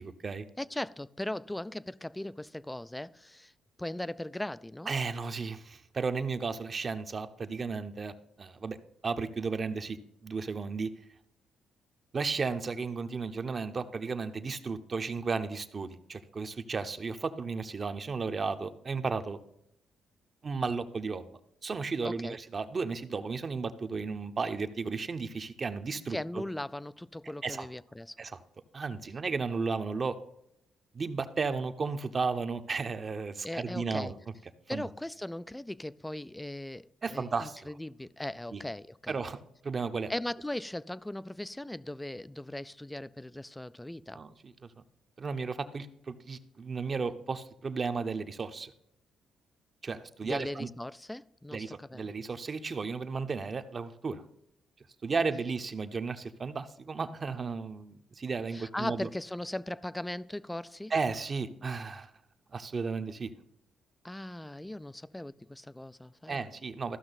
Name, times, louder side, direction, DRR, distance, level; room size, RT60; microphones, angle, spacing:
voice 1, 0.0-0.5 4.9-8.8 9.0-10.9 12.1-19.4 20.4-26.4 27.4-27.7 28.2-28.3 28.7-30.2 30.9-34.3 34.7-34.9 37.0-37.7 38.5-38.6 39.1-39.4 39.6-40.1 44.1-44.5 45.2-48.7 49.8-50.7 51.5-54.2 55.0-59.1 60.9-62.1 62.5-63.3 66.3-67.0, right 4 dB, 35° right, 0.8 m, -34 dB
voice 2, 0.6-3.5 3.8-4.9 22.0-22.4 26.1-28.2 33.4-34.1 34.7-39.2 40.1-44.2 50.2-52.1 58.5-60.9 64.0-66.4, left 1 dB, 10° left, 0.3 m, -38 dB
14.0 x 6.0 x 4.0 m
cardioid pair, 90°, 0 cm